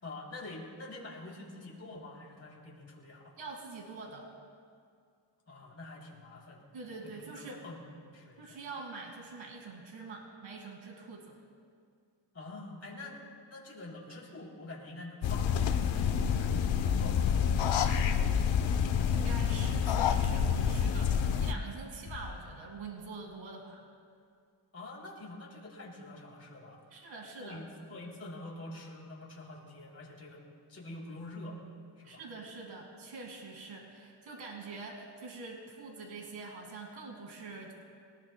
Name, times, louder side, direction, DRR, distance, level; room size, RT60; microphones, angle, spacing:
voice 1, 0.0-3.4 5.5-8.6 12.3-18.8 24.7-27.1 27.4-30.4 30.7-31.6 32.0-32.2, left 2 dB, 35° left, -3 dB, 3.3 m, -47 dB
voice 2, 3.4-4.3 6.7-7.6 8.4-11.4 19.1-23.8 26.9-27.6 32.0-37.7, right 3 dB, 85° right, 1 dB, 2.1 m, -45 dB
sound 1, 15.2-21.5, left 7 dB, 80° left, 0.9 m, -28 dB
Bass drum, 22.1-23.5, left 4 dB, 55° left, 2.0 m, -48 dB
21.5 x 19.0 x 2.2 m, 2.2 s
wide cardioid pair, 120°, 44 cm